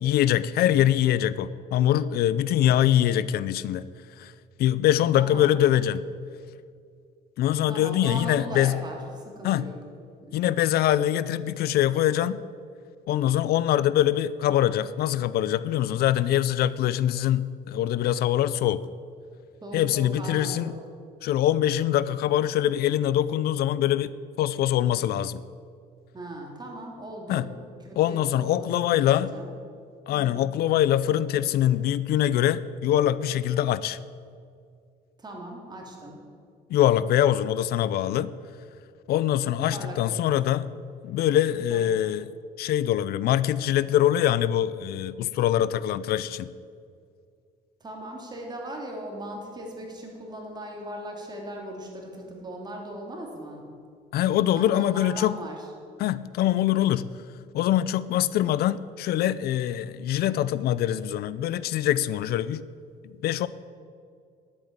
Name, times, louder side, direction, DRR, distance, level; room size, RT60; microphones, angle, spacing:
voice 1, 0.0-3.8 4.2-4.3 4.6-6.0 7.4-8.7 9.4-9.7 10.3-12.4 13.1-18.9 19.7-20.7 21.2-24.1 24.4-25.4 27.3-27.4 28.0-29.3 30.1-34.0 36.7-38.3 39.1-40.7 41.0-42.3 42.6-46.5 54.1-55.4 56.0-57.1 57.5-62.6 63.0-63.5, left 12 dB, 65° left, 17 dB, 0.5 m, -23 dB
voice 2, 5.2-5.5 7.7-9.8 10.2-10.6 19.6-20.8 26.1-27.5 27.8-29.5 30.1-30.5 35.2-36.2 39.6-40.4 41.7-42.0 47.8-53.7 54.5-55.7, right 1 dB, 25° right, 0 dB, 2.9 m, -39 dB
10.5 x 8.5 x 7.9 m, 2.3 s
cardioid pair, 110°, 17 cm